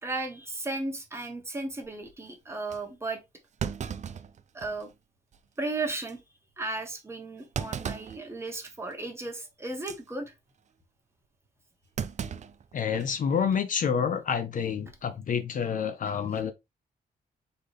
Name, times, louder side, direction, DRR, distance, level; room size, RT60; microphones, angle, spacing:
voice 1, 0.0-3.2 4.5-4.9 5.6-6.2 6.6-10.3 14.6-14.7, right 2 dB, 15° right, 1.3 m, -35 dB
Thump thud, 1.8-2.1 2.7-2.8 3.6-4.9 5.3-5.4 5.9-6.1 7.5-8.2 8.7-8.9 9.7-10.0 12.0-13.2 13.5-13.6 14.7-15.1, right 7 dB, 45° right, 0.5 m, -36 dB
voice 2, 12.7-16.5, left 7 dB, 55° left, 0.6 m, -28 dB
4.0 x 3.8 x 3.3 m
cardioid pair, 120°, 16 cm